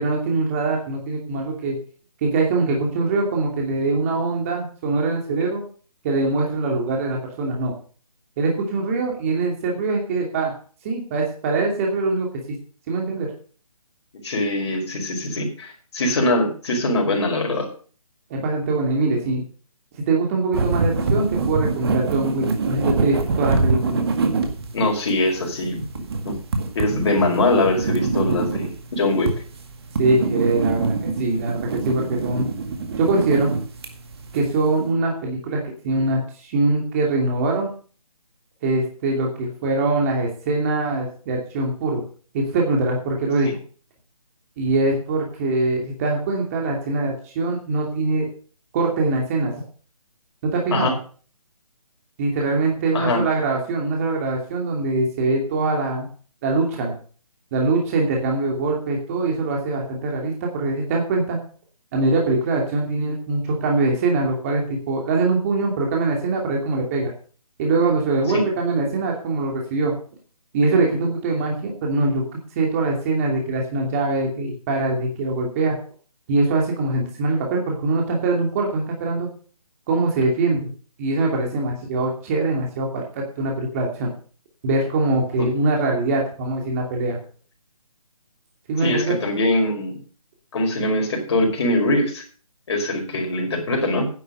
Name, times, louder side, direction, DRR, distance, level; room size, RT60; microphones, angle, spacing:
voice 1, 0.0-1.8 2.2-5.6 6.0-7.7 8.4-10.5 10.8-12.6 12.9-13.3 18.3-19.4 20.1-24.0 30.0-32.5 33.0-33.5 34.3-37.7 38.6-42.0 42.3-43.5 44.6-48.3 48.7-49.5 50.4-50.9 52.2-56.1 56.4-56.9 57.5-61.4 61.9-67.1 67.6-69.9 70.5-72.2 72.6-75.8 76.3-79.3 79.9-80.7 81.0-84.1 84.6-87.2 88.7-89.1, right 3 dB, 25° right, 0 dB, 2.7 m, -23 dB
voice 2, 14.2-17.7 24.7-25.8 26.2-26.4 26.7-29.3 43.4-43.5 50.7-50.9 52.9-53.2 68.3-68.4 88.8-89.9 90.5-92.2 92.7-94.1, left 2 dB, 45° left, 2 dB, 5.0 m, -22 dB
sound 1, 20.5-34.8, right 3 dB, 40° right, 2.0 m, -25 dB
11.0 x 8.1 x 6.6 m, 0.42 s
figure-of-eight pair, 160°, 19 cm